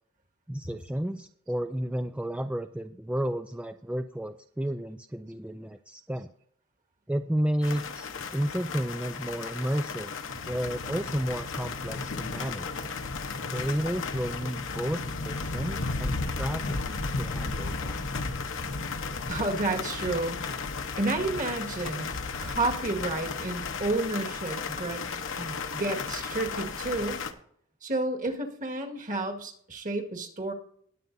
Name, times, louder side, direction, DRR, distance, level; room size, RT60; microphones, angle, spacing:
voice 1, 0.5-6.3 7.1-10.2 10.4-12.9 13.5-18.0, right 1 dB, 5° right, 7 dB, 0.3 m, -32 dB
sound 1, 7.6-27.3, left 4 dB, 65° left, 1.0 m, -34 dB
voice 2, 19.3-20.6 21.0-22.1 22.4-25.0 25.4-27.2 27.8-30.5, right 2 dB, 40° right, 3 dB, 1.8 m, -31 dB
20.0 x 7.8 x 2.7 m, 0.64 s
head